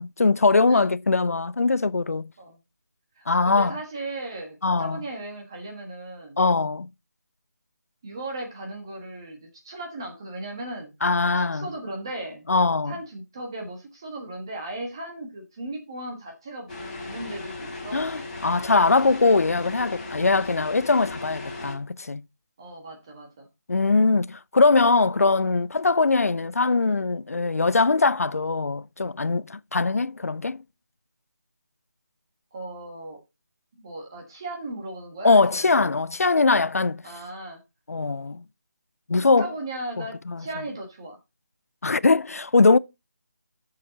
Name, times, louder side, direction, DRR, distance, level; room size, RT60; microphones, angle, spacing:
voice 1, 0.0-2.3 3.3-3.7 4.6-5.0 6.4-6.9 11.0-11.7 12.5-12.9 17.9-22.2 23.7-30.6 35.2-37.0 37.9-38.4 39.1-39.5 40.0-40.4 41.8-42.8, left 3 dB, 60° left, 0.5 m, -21 dB
voice 2, 3.2-6.4 8.0-10.9 11.3-12.5 12.9-18.1 22.6-23.5 32.5-33.2 33.7-35.9 37.0-37.6 39.4-41.2, right 2 dB, 15° right, 1.5 m, -37 dB
sound 1, 16.7-21.7, left 2 dB, 30° left, 2.8 m, -37 dB
10.0 x 6.8 x 4.0 m
figure-of-eight pair, 180°, 9 cm